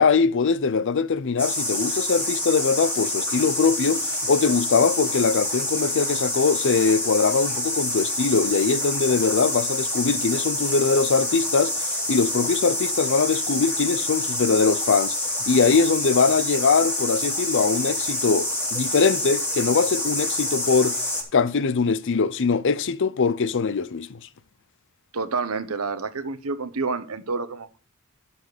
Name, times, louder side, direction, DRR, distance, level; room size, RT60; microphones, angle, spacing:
voice 1, 0.0-15.2 15.5-21.0 21.3-24.2, left 5 dB, 60° left, 0.6 m, -22 dB
sound 1, 1.4-21.2, left 1 dB, 10° left, 3.5 m, -27 dB
voice 2, 25.1-27.8, right 4 dB, 85° right, 1.0 m, -29 dB
12.0 x 4.3 x 6.6 m
head